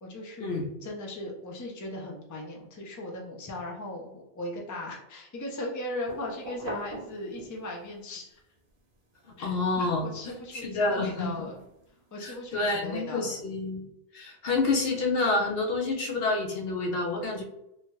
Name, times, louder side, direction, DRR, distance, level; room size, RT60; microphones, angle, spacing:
voice 1, 0.0-8.4 9.4-11.6 12.1-13.3, left 1 dB, 25° left, 0 dB, 0.4 m, -38 dB
sound 1, 6.0-7.9 8.4-13.0, right 2 dB, 60° right, 0.8 m, -46 dB
voice 2, 9.4-11.3 12.2-13.8 14.1-17.4, left 3 dB, 70° left, 2 dB, 0.8 m, -28 dB
2.8 x 2.3 x 3.0 m, 0.85 s
omnidirectional pair, 1.1 m